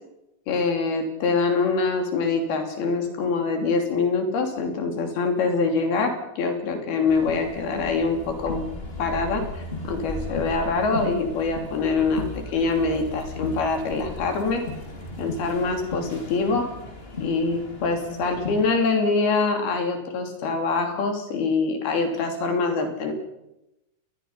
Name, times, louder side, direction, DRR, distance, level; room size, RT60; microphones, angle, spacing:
voice 1, 0.5-8.6 9.0-9.5 9.8-14.6 15.2-16.7 17.2-23.1, left 4 dB, 80° left, 4 dB, 4.9 m, -24 dB
sound 1, 7.1-18.8, left 2 dB, 15° left, 2.5 m, -36 dB
27.5 x 20.5 x 5.7 m, 0.92 s
omnidirectional pair, 4.4 m